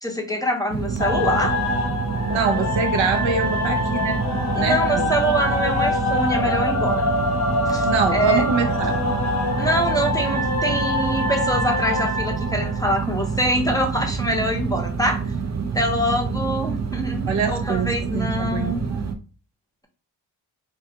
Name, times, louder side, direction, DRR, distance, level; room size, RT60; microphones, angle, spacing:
voice 1, 0.0-1.6 4.5-7.0 7.7-8.4 9.6-15.2 15.7-18.8, equal, 10° left, 1 dB, 0.6 m, -24 dB
sound 1, 0.7-19.1, right 5 dB, 40° right, 0.5 m, -27 dB
sound 2, 1.0-13.6, left 2 dB, 35° left, 0.8 m, -25 dB
voice 2, 2.3-4.2 4.6-5.1 7.8-9.0 17.3-19.0, right 5 dB, 80° right, 4 dB, 0.7 m, -25 dB
2.4 x 2.4 x 2.7 m, 0.34 s
cardioid pair, 45°, 46 cm